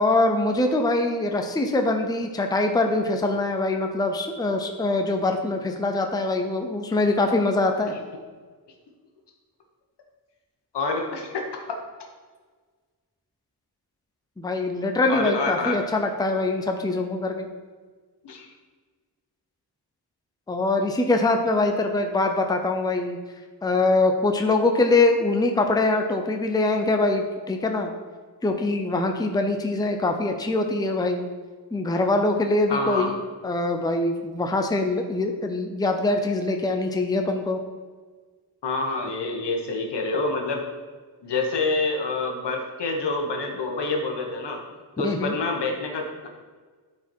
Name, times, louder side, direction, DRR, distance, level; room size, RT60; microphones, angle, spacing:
voice 1, 0.0-7.9 14.4-17.5 20.5-23.2 23.6-27.9 28.4-31.3 31.7-37.6 45.0-45.3, left 2 dB, 10° left, 4 dB, 0.6 m, -23 dB
voice 2, 10.7-11.8 15.1-15.8 18.2-18.5 32.7-33.1 38.6-40.7 41.2-44.6 45.0-46.3, left 3 dB, 80° left, 2 dB, 1.5 m, -27 dB
11.5 x 4.7 x 4.6 m, 1.5 s
wide cardioid pair, 150°, 41 cm